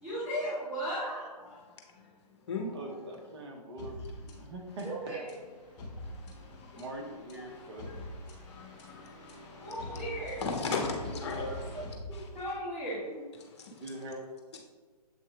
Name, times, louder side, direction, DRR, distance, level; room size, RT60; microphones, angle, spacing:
voice 1, 0.0-1.3 4.8-5.4 9.6-10.5 12.3-13.2, equal, 5° right, -13 dB, 0.8 m, -36 dB
voice 2, 2.7-5.3 6.7-7.9 11.1-12.2 13.8-14.3, right 1 dB, 40° right, 1 dB, 0.9 m, -42 dB
sound 1, 3.8-12.7, left 1 dB, 25° left, 1.4 m, -45 dB
voice 3, 10.4-11.6 12.1-12.2, left 4 dB, 40° left, 2 dB, 0.9 m, -34 dB
7.6 x 3.0 x 2.3 m, 1.4 s
figure-of-eight pair, 140°, 21 cm